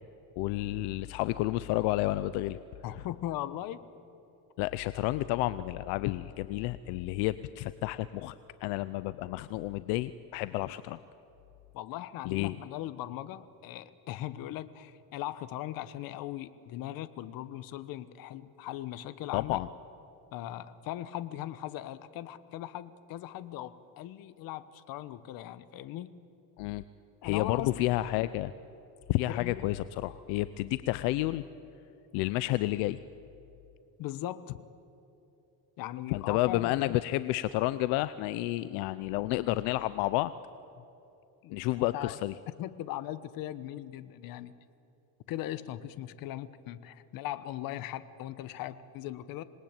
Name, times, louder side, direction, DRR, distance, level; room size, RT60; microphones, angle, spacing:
voice 1, 0.4-2.6 4.6-8.4 8.6-11.0 12.3-12.6 19.3-19.7 26.6-26.8 27.2-28.5 29.1-31.4 32.1-33.0 36.1-40.3 41.5-42.3, left 17 dB, 80° left, 15 dB, 0.8 m, -30 dB
voice 2, 2.8-3.8 11.7-19.6 20.3-26.1 27.2-27.8 29.3-29.7 34.0-34.5 35.8-37.0 40.8-40.9 41.4-42.2 42.6-44.5 45.3-49.4, left 13 dB, 60° left, 15 dB, 1.2 m, -39 dB
26.5 x 20.5 x 9.0 m, 2.9 s
cardioid pair, 145°, 39 cm